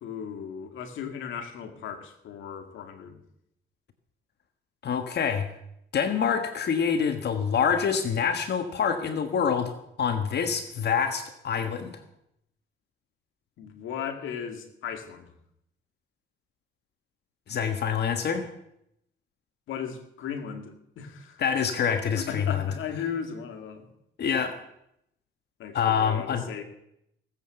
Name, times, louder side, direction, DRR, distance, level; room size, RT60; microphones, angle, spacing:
voice 1, 0.0-3.2 13.6-15.3 19.7-21.4 22.1-23.9 25.6-26.6, left 7 dB, 80° left, 6 dB, 2.1 m, -36 dB
voice 2, 4.8-5.5 5.9-9.7 10.0-12.0 17.5-18.5 21.4-22.6 24.2-24.6 25.7-26.6, left 7 dB, 55° left, 8 dB, 1.4 m, -26 dB
18.5 x 7.8 x 7.9 m, 0.79 s
cardioid pair, 90°, 20 cm